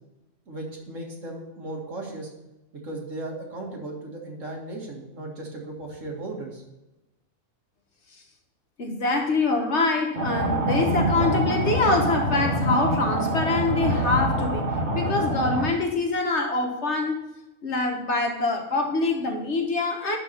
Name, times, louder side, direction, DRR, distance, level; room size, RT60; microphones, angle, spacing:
voice 1, 0.5-2.3 2.8-6.6, right 2 dB, 65° right, -1 dB, 2.2 m, -36 dB
voice 2, 8.8-17.3 17.6-20.2, left 3 dB, 55° left, 3 dB, 1.4 m, -25 dB
sound 1, 10.1-15.7, right 1 dB, 35° right, 1.4 m, -25 dB
11.0 x 4.3 x 6.6 m, 0.99 s
omnidirectional pair, 1.5 m